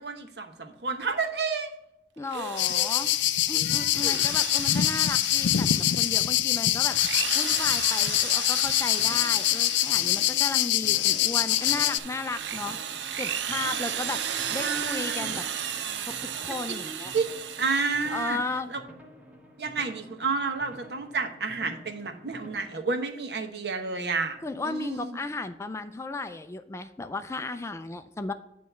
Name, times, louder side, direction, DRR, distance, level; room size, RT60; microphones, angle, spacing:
voice 1, 0.0-1.7 2.3-2.9 3.5-4.2 14.6-15.4 16.7-16.8 17.1-17.3 17.6-18.4 18.7-18.8 19.6-24.4 24.6-25.2, right 4 dB, 65° right, 5 dB, 1.0 m, -31 dB
voice 2, 2.2-3.1 3.5-7.0 7.3-12.8 13.2-14.2 14.5-15.5 16.0-17.1 18.1-18.7 24.4-28.3, left 3 dB, 15° left, 9 dB, 0.3 m, -34 dB
Drill, 2.2-3.3 3.8-6.2 6.8-10.5 11.0-18.5, right 9 dB, 80° right, 0.5 m, -35 dB
sound 1, 2.6-12.0, left 13 dB, 90° left, 0.4 m, -24 dB
sound 2, 9.0-22.6, equal, 10° right, 0.9 m, -49 dB
9.1 x 3.2 x 6.6 m, 0.85 s
head